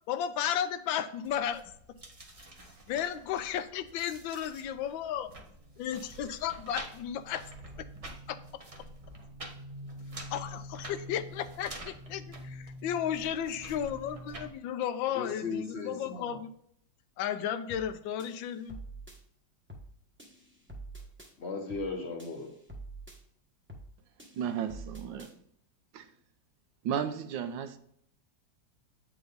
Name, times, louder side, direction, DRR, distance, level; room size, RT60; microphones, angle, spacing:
voice 1, 0.1-1.6 2.9-5.3 5.8-7.4 7.8-7.9 8.3-8.4 10.3-16.5 17.2-18.8, left 9 dB, 85° left, 1.3 m, -34 dB
sound 1, 1.2-14.5, right 1 dB, 35° right, 0.5 m, -46 dB
voice 2, 15.1-16.4 21.4-22.5, left 4 dB, 50° left, 0.9 m, -37 dB
sound 2, 17.7-17.9 18.2-19.2 19.7-19.9 20.2-21.3 21.7-21.9 22.2-23.2 23.7-23.9 24.2-25.3, right 2 dB, 10° right, 0.9 m, -46 dB
voice 3, 24.3-25.3 25.9-26.1 26.8-27.8, right 8 dB, 80° right, 1.4 m, -34 dB
8.0 x 4.7 x 3.9 m
omnidirectional pair, 2.0 m